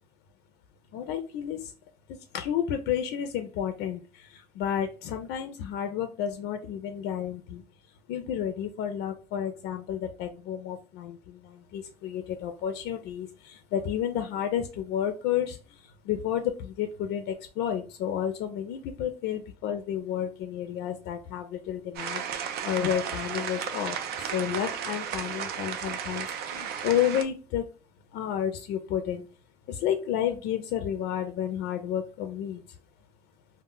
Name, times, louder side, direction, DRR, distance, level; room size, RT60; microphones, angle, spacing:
voice 1, 0.9-1.7 2.3-7.6 8.1-15.6 16.1-27.6 28.1-29.3 29.7-32.6, left 9 dB, 90° left, 7 dB, 0.4 m, -31 dB
sound 1, 21.9-27.2, right 8 dB, 70° right, 0.4 m, -34 dB
2.1 x 2.0 x 3.6 m, 0.33 s
cardioid pair, 110°, 17 cm